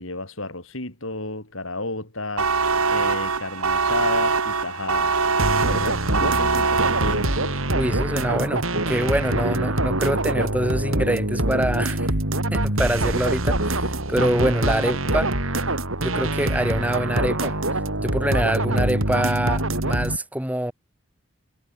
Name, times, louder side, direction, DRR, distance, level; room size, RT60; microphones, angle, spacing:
voice 1, 0.0-2.5 2.9-5.2 5.6-7.6, left 2 dB, 65° left, 6.1 m, -32 dB
sound 1, 2.4-7.6, right 4 dB, 85° right, 3.2 m, -23 dB
sound 2, 5.4-20.2, right 1 dB, 70° right, 5.8 m, -24 dB
voice 2, 7.7-12.1 12.5-15.3 16.0-20.7, right 1 dB, 5° right, 2.3 m, -25 dB
head